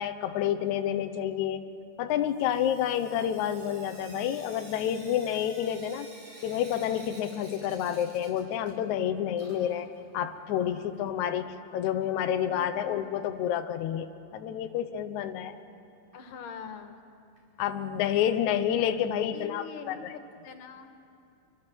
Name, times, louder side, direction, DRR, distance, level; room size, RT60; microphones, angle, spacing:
voice 1, 0.0-1.6 2.0-6.1 6.4-9.9 10.1-14.1 14.3-15.6 17.6-20.1, left 10 dB, 80° left, 8 dB, 1.7 m, -29 dB
Sink (filling or washing) / Drip, 2.3-9.0 9.3-11.2 12.4-12.5 12.8-12.9 13.1-13.2 16.1-16.2 16.7-16.8 17.4-17.5 18.1-18.2 18.8-18.9 19.8-19.9, right 2 dB, 45° right, 5.8 m, -52 dB
voice 2, 12.4-13.1 16.1-17.0 19.3-20.1 20.4-20.9, left 7 dB, 60° left, 6 dB, 2.8 m, -43 dB
27.0 x 23.0 x 7.2 m, 2.4 s
omnidirectional pair, 4.5 m